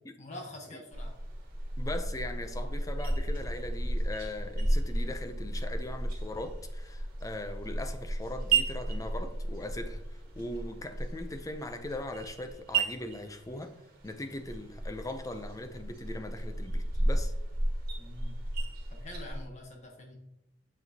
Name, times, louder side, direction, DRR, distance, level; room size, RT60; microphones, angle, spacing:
voice 1, 0.2-1.2 18.0-18.4 18.9-20.2, left 1 dB, 40° left, 1.2 m, -45 dB
sound 1, 0.9-19.4, right 2 dB, 55° right, 1.7 m, -34 dB
voice 2, 1.8-10.0 10.4-13.7 14.0-17.3, left 1 dB, 20° left, 0.6 m, -40 dB
7.2 x 6.0 x 2.9 m
head